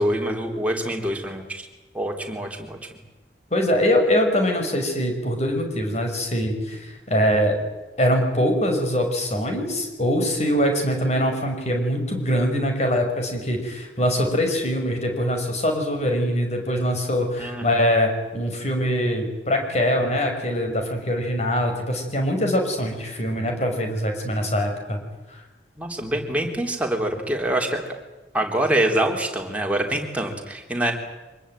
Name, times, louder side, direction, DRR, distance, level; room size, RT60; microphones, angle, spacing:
voice 1, 0.0-1.7 1.9-2.8 17.4-17.7 25.8-27.8 28.3-30.9, right 1 dB, 10° right, 1 dB, 3.6 m, -25 dB
voice 2, 3.5-7.5 8.0-25.0 25.3-25.4, equal, 40° left, 4 dB, 5.9 m, -23 dB
25.5 x 20.5 x 9.2 m, 1.1 s
head